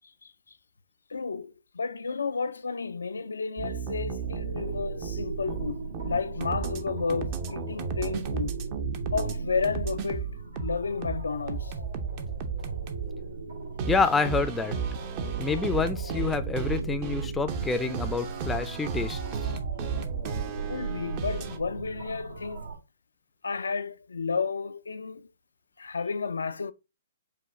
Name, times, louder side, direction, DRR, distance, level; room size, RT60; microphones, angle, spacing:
voice 1, 1.1-8.6 9.1-11.7 20.7-22.7 23.4-25.3 25.8-26.7, left 5 dB, 90° left, 0.4 m, -32 dB
sound 1, 3.6-9.3 9.6-13.1 13.8-21.6, right 6 dB, 35° right, 0.6 m, -34 dB
sound 2, 4.2-22.8, right 4 dB, 90° right, 1.8 m, -38 dB
voice 2, 13.9-14.8 15.4-19.2, left 4 dB, 10° left, 0.4 m, -27 dB
5.0 x 2.2 x 3.7 m
hypercardioid pair, 140°, 0 cm